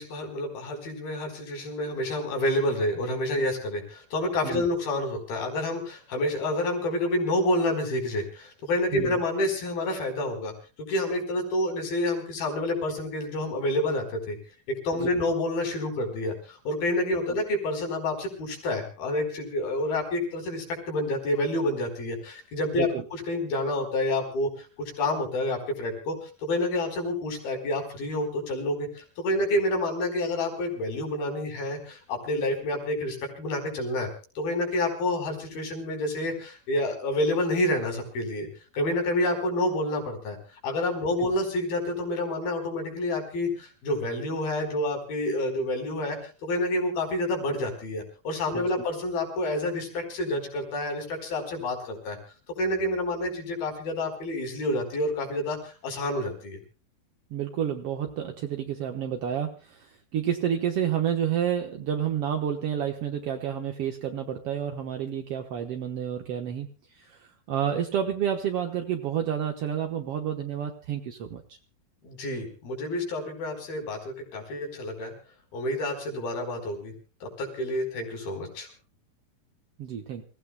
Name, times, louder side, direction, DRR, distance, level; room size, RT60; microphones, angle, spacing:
voice 1, 0.0-10.5 10.8-14.4 14.7-34.1 34.4-38.5 38.7-40.4 40.6-52.2 52.6-56.6 72.0-75.1 75.5-76.9 77.2-78.7, left 1 dB, 80° left, 3 dB, 6.4 m, -28 dB
voice 2, 57.3-66.7 67.0-71.4 79.8-80.2, right 9 dB, 65° right, 4 dB, 1.5 m, -30 dB
27.0 x 16.5 x 2.2 m, 0.37 s
omnidirectional pair, 4.2 m